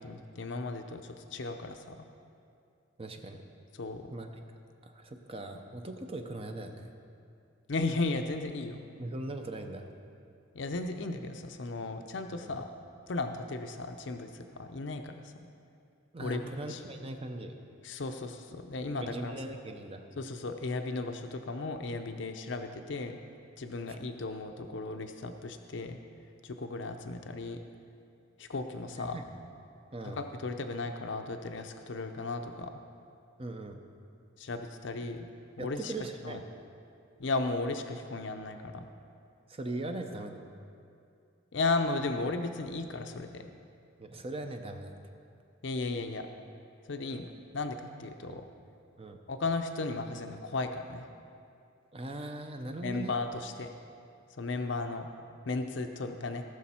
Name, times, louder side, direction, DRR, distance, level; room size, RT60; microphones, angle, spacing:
voice 1, 0.0-2.0 3.8-4.1 7.7-8.9 10.5-12.7 13.1-15.3 16.2-16.8 17.8-19.3 20.2-23.2 23.6-26.0 26.4-27.6 28.4-29.2 30.0-32.7 34.4-35.3 35.6-35.9 36.2-36.4 37.2-38.9 41.5-43.4 45.6-46.3 46.9-48.5 49.3-51.1 52.8-53.7 54.4-55.1 55.5-56.4, left 3 dB, 65° left, 6 dB, 0.6 m, -35 dB
voice 2, 3.0-3.4 4.1-4.4 4.8-6.9 9.0-9.9 12.4-12.6 16.1-17.5 18.9-20.0 23.9-24.0 29.0-29.2 29.9-30.2 33.4-33.8 35.6-36.4 39.5-40.4 44.0-44.9 48.3-48.4 49.0-49.2 51.9-53.2, right 2 dB, 30° right, 5 dB, 0.6 m, -40 dB
18.5 x 6.3 x 4.3 m, 2.5 s
head